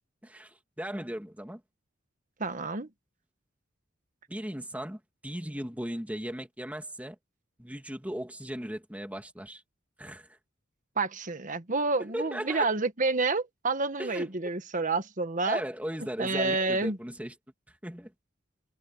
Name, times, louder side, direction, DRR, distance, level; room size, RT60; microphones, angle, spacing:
voice 1, 0.2-1.6 4.3-7.2 7.6-9.6 10.0-10.4 12.0-12.7 14.0-14.4 15.4-17.3 17.7-18.1, equal, 10° right, 2.7 m, -37 dB
voice 2, 2.4-2.9 11.0-15.6 16.2-17.0, right 3 dB, 40° right, 1.4 m, -29 dB
head